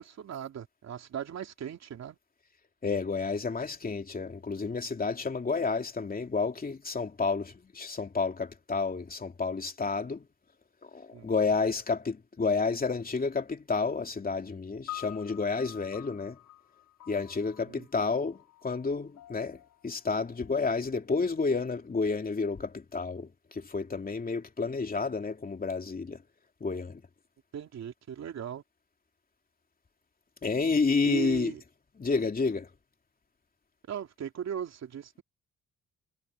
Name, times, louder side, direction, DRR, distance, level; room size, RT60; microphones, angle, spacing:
voice 1, 0.0-2.2 11.1-11.3 17.7-17.9 27.5-28.6 31.0-31.6 33.9-35.2, right 9 dB, 60° right, 3.2 m, -38 dB
voice 2, 2.8-10.2 10.9-16.4 17.1-18.4 18.6-19.6 19.8-26.2 26.6-27.0 30.4-31.5 32.0-32.7, left 4 dB, 30° left, 2.8 m, -30 dB
sound 1, 14.9-21.3, left 15 dB, 85° left, 4.2 m, -48 dB
cardioid pair, 90°, 30 cm